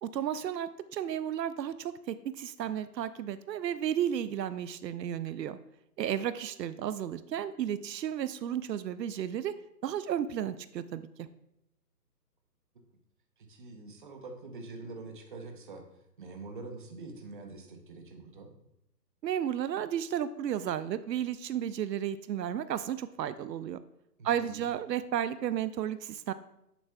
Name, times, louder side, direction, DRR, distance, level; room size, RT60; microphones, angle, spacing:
voice 1, 0.0-5.6 6.0-9.6 9.8-11.3 19.2-23.8 24.2-26.3, right 10 dB, 80° right, 14 dB, 0.6 m, -33 dB
voice 2, 13.4-15.8 16.2-18.5 24.2-24.7, right 3 dB, 30° right, 4 dB, 0.7 m, -45 dB
8.3 x 7.1 x 2.3 m, 0.81 s
hypercardioid pair, 160°, 49 cm